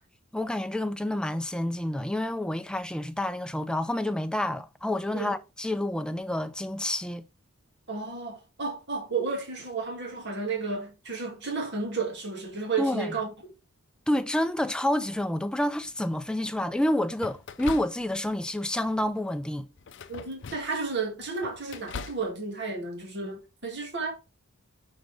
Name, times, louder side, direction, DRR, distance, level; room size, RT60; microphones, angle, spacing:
voice 1, 0.3-7.2 12.8-13.2 14.1-19.7, left 1 dB, 5° left, 0.4 m, -29 dB
voice 2, 7.9-13.3 20.1-24.1, right 4 dB, 55° right, 2.2 m, -32 dB
sound 1, 15.8-16.3 17.2-18.4 18.8-19.1 19.8-20.8 21.2-22.3, left 5 dB, 55° left, 0.5 m, -41 dB
6.3 x 5.1 x 3.5 m
head